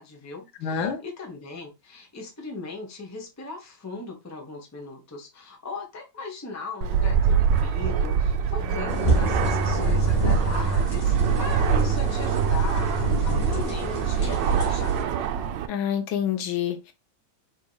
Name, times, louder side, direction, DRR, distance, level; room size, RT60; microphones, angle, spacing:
voice 1, 0.0-15.3, left 4 dB, 15° left, 0.7 m, -38 dB
voice 2, 0.6-1.0 15.7-16.9, left 8 dB, 80° left, 1.6 m, -27 dB
Fixed-wing aircraft airplane, 6.8-15.7, right 7 dB, 75° right, 1.2 m, -24 dB
sound 1, 8.5-14.5, right 3 dB, 15° right, 1.9 m, -32 dB
sound 2, 8.9-15.0, right 2 dB, 30° left, 1.9 m, -29 dB
4.8 x 4.1 x 2.3 m
omnidirectional pair, 2.1 m